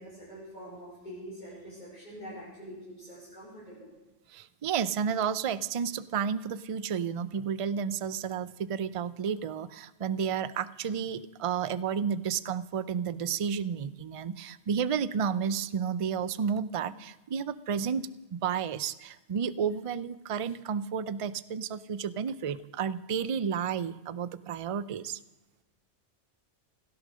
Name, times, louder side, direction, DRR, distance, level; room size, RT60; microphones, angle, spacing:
voice 1, 0.0-3.9, equal, 40° left, -8 dB, 4.6 m, -45 dB
voice 2, 4.3-25.2, right 7 dB, 45° right, 17 dB, 0.4 m, -31 dB
16.5 x 13.0 x 6.3 m, 1.1 s
omnidirectional pair, 1.2 m